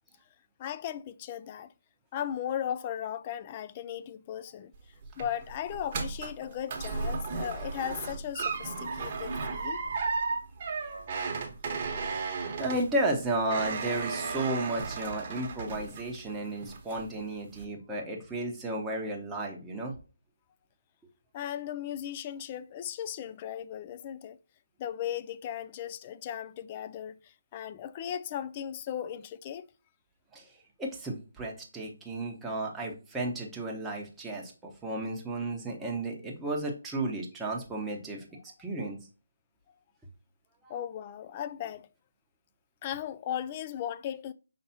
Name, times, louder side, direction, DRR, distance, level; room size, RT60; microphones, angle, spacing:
voice 1, 0.6-1.7 2.1-4.7 5.2-9.8 21.3-24.4 24.8-29.7 40.7-41.9 42.8-44.3, left 10 dB, 30° left, 0.3 m, -37 dB
sound 1, 4.7-16.3 16.6-17.1 17.5-17.6, right 4 dB, 35° right, 1.1 m, -35 dB
voice 2, 12.6-19.9 30.3-30.5 30.8-38.3 38.6-39.0 40.6-40.7, right 2 dB, 10° right, 1.0 m, -33 dB
5.6 x 3.2 x 2.8 m
figure-of-eight pair, 155°, 0 cm